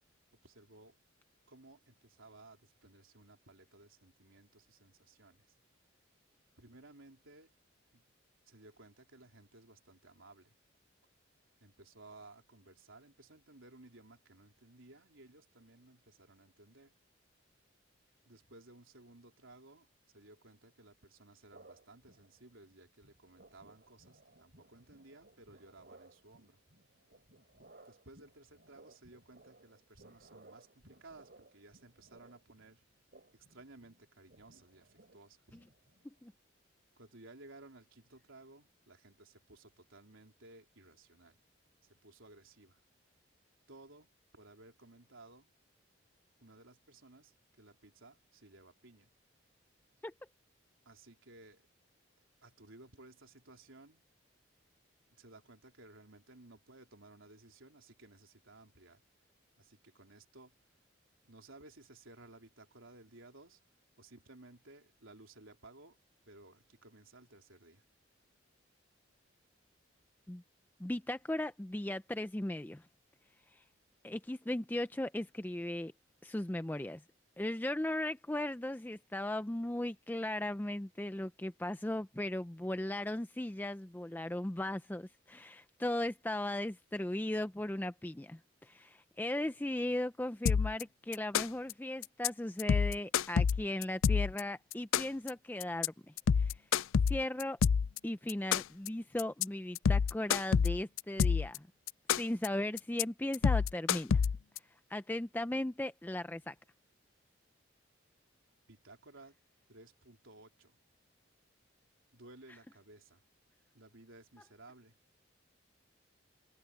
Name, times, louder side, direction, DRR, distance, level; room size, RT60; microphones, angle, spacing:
voice 1, 0.4-1.0 1.5-5.5 6.6-7.5 7.9-8.0 8.5-10.6 11.6-16.9 18.3-26.6 27.8-32.8 33.3-35.6 37.0-41.4 41.8-42.8 43.7-45.5 46.4-49.1 50.9-51.7 52.4-54.0 55.1-59.0 59.6-60.6 61.3-63.6 64.0-66.0 66.3-67.9 108.7-109.4 109.7-110.8 112.1-113.2 113.7-115.0, right 2 dB, 85° right, 3.8 m, -58 dB
sound 1, 21.5-22.8 23.0-36.2, right 2 dB, 55° right, 3.2 m, -61 dB
voice 2, 70.8-72.9 73.5-73.6 74.0-75.9 76.2-77.0 77.4-96.6 97.1-97.6 98.0-101.7 102.2-104.2 104.9-106.5, left 1 dB, 10° left, 0.4 m, -37 dB
sound 2, 90.5-90.8 91.1-91.7 92.0-92.3 92.6-94.4 94.7-95.3 95.6-95.9 96.2-98.0 98.3-98.9 99.2-99.4 99.8-101.6 101.9-102.5 102.8-103.0 103.3-104.6, left 6 dB, 80° left, 0.4 m, -28 dB
head